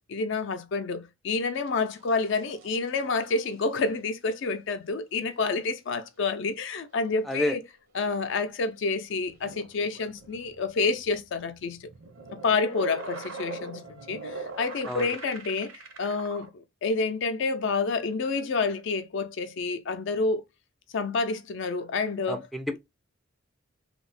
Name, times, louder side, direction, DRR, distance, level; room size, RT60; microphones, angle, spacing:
voice 1, 0.0-7.6 7.9-11.9 12.3-15.7 16.0-20.4 20.9-22.5, left 4 dB, 65° left, 0.5 m, -29 dB
sound 1, 1.5-3.7 8.0-8.1 9.2-16.5, right 3 dB, 80° right, 0.7 m, -43 dB
voice 2, 7.3-7.6 14.9-15.1 22.3-22.8, left 1 dB, ahead, 0.3 m, -29 dB
2.9 x 2.0 x 3.9 m
head